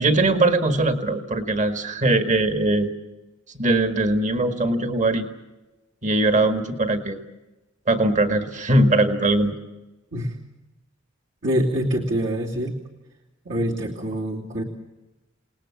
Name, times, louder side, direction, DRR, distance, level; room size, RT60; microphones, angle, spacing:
voice 1, 0.0-2.9 3.5-5.3 6.0-7.2 7.9-9.6, right 2 dB, 40° right, 6 dB, 1.9 m, -21 dB
voice 2, 11.4-12.8 13.4-14.6, equal, 65° right, -3 dB, 2.9 m, -25 dB
29.0 x 19.5 x 7.4 m, 1.0 s
head